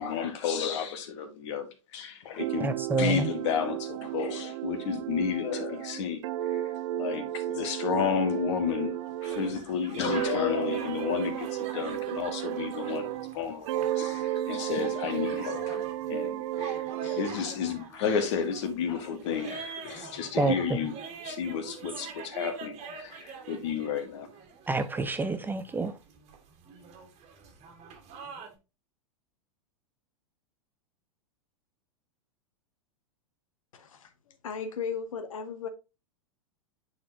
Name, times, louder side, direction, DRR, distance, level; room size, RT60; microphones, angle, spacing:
voice 1, 0.0-1.7 1.9-6.2 6.5-6.6 7.0-11.5 11.7-20.9 21.2-24.3, left 7 dB, 55° left, 1.5 m, -32 dB
sound 1, 2.4-9.6 10.0-13.4 13.7-17.3, right 13 dB, 60° right, 0.4 m, -33 dB
voice 2, 2.6-3.3 20.4-20.8 24.7-25.9, right 3 dB, 10° right, 0.5 m, -28 dB
sound 2, 9.2-28.5, right 5 dB, 40° right, 1.7 m, -45 dB
voice 3, 33.7-34.1 34.4-35.7, left 6 dB, 75° left, 0.9 m, -35 dB
9.3 x 4.2 x 2.7 m
hypercardioid pair, 100°, 17 cm